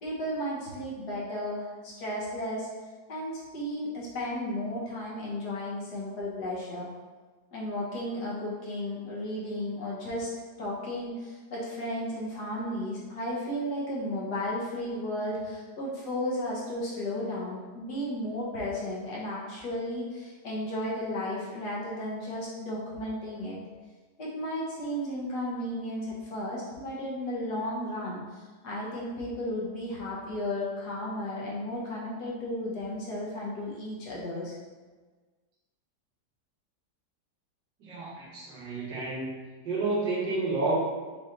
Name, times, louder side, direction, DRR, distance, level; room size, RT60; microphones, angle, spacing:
voice 1, 0.0-2.7 3.1-6.9 7.5-10.3 10.6-23.6 24.2-34.5, left 1 dB, 70° left, -5 dB, 1.6 m, -34 dB
voice 2, 37.8-39.3 39.6-40.7, right 3 dB, 80° right, -6 dB, 1.6 m, -30 dB
5.5 x 3.2 x 2.6 m, 1.4 s
omnidirectional pair, 1.9 m